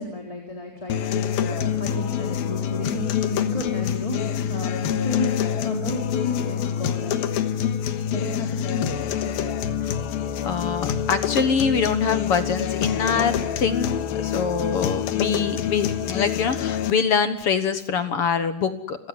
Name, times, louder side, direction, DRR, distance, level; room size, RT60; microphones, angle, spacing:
voice 1, 0.0-7.6 8.1-9.7, left 2 dB, 10° left, 1 dB, 3.6 m, -33 dB
sound 1, 0.9-16.9, left 9 dB, 90° left, 3.2 m, -26 dB
voice 2, 10.4-19.0, left 6 dB, 55° left, 10 dB, 1.7 m, -24 dB
30.0 x 16.5 x 9.9 m, 0.77 s
omnidirectional pair, 4.2 m